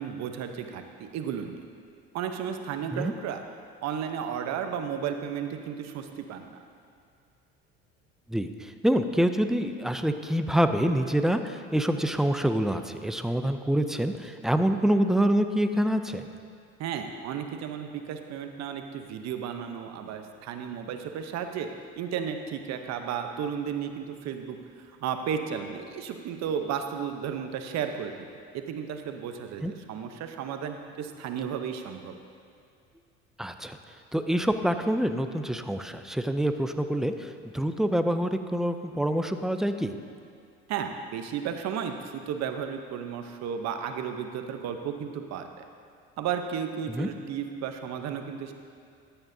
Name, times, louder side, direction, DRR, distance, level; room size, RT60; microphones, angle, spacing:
voice 1, 0.0-1.6 2.1-3.4 3.8-6.6 16.8-21.7 21.9-24.6 25.0-28.3 28.5-32.1 40.7-45.7 46.2-48.5, right 8 dB, 55° right, 6 dB, 0.9 m, -33 dB
voice 2, 8.3-16.3 29.6-29.7 33.4-33.8 34.1-39.9 46.9-47.1, equal, ahead, 8 dB, 0.4 m, -26 dB
13.0 x 9.0 x 2.7 m, 2.3 s
hypercardioid pair, 80°, 32 cm